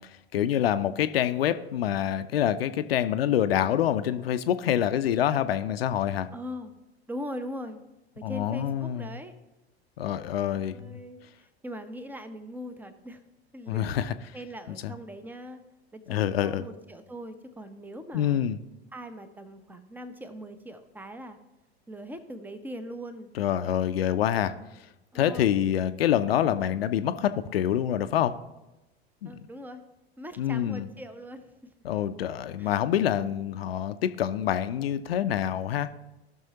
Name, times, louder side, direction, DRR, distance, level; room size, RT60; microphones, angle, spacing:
voice 1, 0.3-6.3 8.2-9.2 10.0-11.0 13.7-14.1 14.7-14.9 16.1-16.6 18.1-18.6 23.4-24.5 25.1-28.3 29.2-29.3 30.4-30.9 31.8-35.9, left 10 dB, 65° left, 11 dB, 0.6 m, -26 dB
voice 2, 6.3-6.8 7.1-7.8 8.2-9.3 10.2-11.2 11.6-13.2 13.5-13.9 14.3-15.6 15.9-18.4 18.9-21.4 21.9-23.3 25.1-25.5 29.3-29.8 30.2-31.4 32.6-32.7, equal, 5° right, 10 dB, 0.7 m, -41 dB
17.0 x 6.2 x 2.8 m, 1.0 s
figure-of-eight pair, 80°, 32 cm